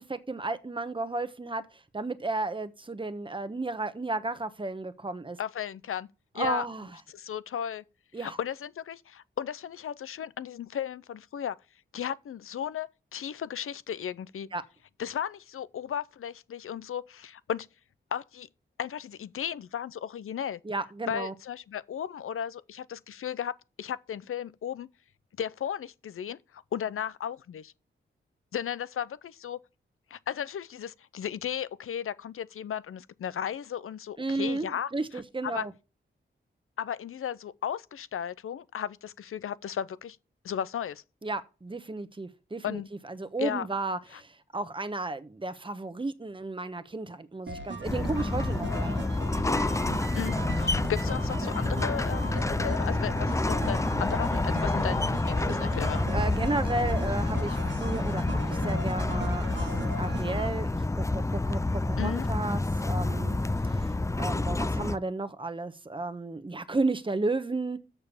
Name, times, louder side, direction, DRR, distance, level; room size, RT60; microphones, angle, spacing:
voice 1, 0.0-1.6 1.9-5.4 6.4-6.9 8.1-8.4 14.5-14.6 20.6-21.3 34.2-35.7 41.2-49.0 56.1-67.8, right 2 dB, 25° right, 1.1 m, -33 dB
voice 2, 5.4-6.1 6.3-6.7 7.1-7.8 8.2-11.6 11.9-14.5 15.0-17.7 18.1-18.5 18.8-20.6 21.1-24.9 25.4-27.7 28.5-29.6 30.1-34.9 35.4-35.7 36.8-40.2 40.4-41.0 42.6-42.9 43.4-43.7 44.1-44.2 50.1-56.0 62.0-62.3, left 9 dB, 85° left, 0.6 m, -35 dB
sound 1, 47.5-60.5, right 2 dB, 60° right, 1.5 m, -39 dB
sound 2, 47.8-65.0, left 2 dB, 15° left, 0.5 m, -28 dB
7.0 x 6.7 x 7.0 m
cardioid pair, 65°, 21 cm